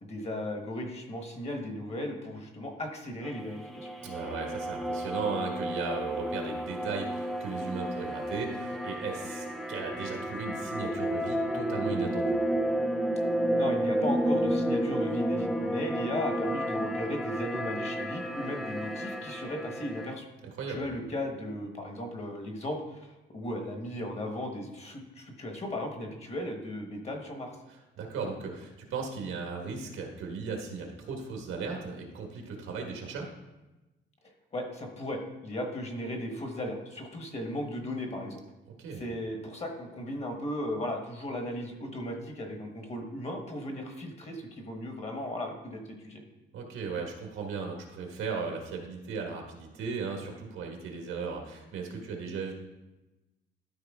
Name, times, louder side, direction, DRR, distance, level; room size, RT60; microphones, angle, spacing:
voice 1, 0.0-3.9 13.6-20.3 20.7-27.5 34.5-38.4 39.0-46.2, left 1 dB, 30° left, 3 dB, 1.2 m, -36 dB
sound 1, 3.2-20.1, equal, ahead, 0.4 m, -31 dB
voice 2, 4.0-12.4 20.6-20.8 28.0-33.3 38.8-39.0 46.5-52.5, right 4 dB, 90° right, 2 dB, 1.6 m, -36 dB
12.5 x 4.6 x 3.6 m, 1.0 s
cardioid pair, 145°, 21 cm